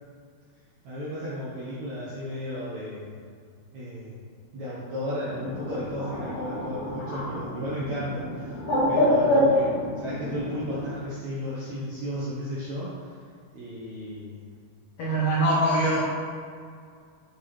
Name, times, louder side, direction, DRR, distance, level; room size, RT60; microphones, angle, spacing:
voice 1, 0.8-3.2 3.7-4.2 4.5-13.1 13.5-14.5, equal, 70° right, -9 dB, 1.7 m, -34 dB
Bird, 5.3-10.8, left 1 dB, 55° left, 1.6 m, -26 dB
voice 2, 15.0-16.0, right 1 dB, 80° left, -7 dB, 1.5 m, -23 dB
8.0 x 4.2 x 3.1 m, 2.1 s
omnidirectional pair, 4.6 m